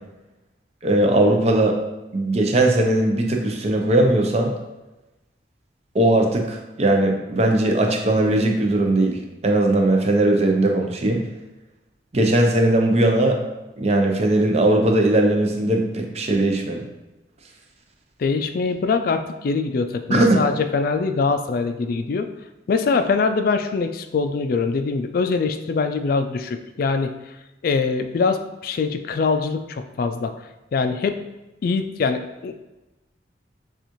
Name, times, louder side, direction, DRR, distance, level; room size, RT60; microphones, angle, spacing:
voice 1, 0.8-1.8 2.1-4.5 5.9-9.2 9.4-11.2 12.1-13.4 13.8-16.8 20.1-20.4, right 1 dB, 35° right, 2 dB, 0.6 m, -19 dB
voice 2, 18.2-22.3 22.7-27.1 27.6-30.3 30.7-31.2 31.6-32.5, left 4 dB, 55° left, 8 dB, 0.3 m, -23 dB
6.8 x 2.4 x 3.0 m, 1.0 s
head